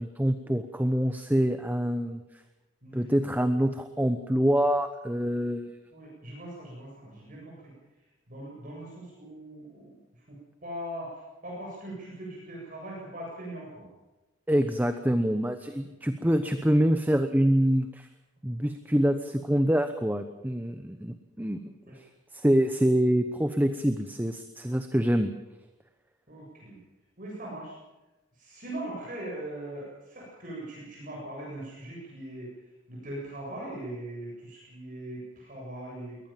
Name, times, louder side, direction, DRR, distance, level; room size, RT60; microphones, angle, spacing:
voice 1, 0.0-2.2 2.9-5.8 14.5-18.1 18.4-21.6 21.9-22.1 22.3-25.3, equal, 10° right, 8 dB, 1.0 m, -25 dB
voice 2, 5.9-7.7 8.3-11.1 11.4-13.9 16.0-16.1 21.9-22.0 26.3-26.8 27.2-27.8 28.4-32.5 32.9-36.2, right 1 dB, 40° right, -4 dB, 7.7 m, -40 dB
23.0 x 18.5 x 7.4 m, 1.0 s
head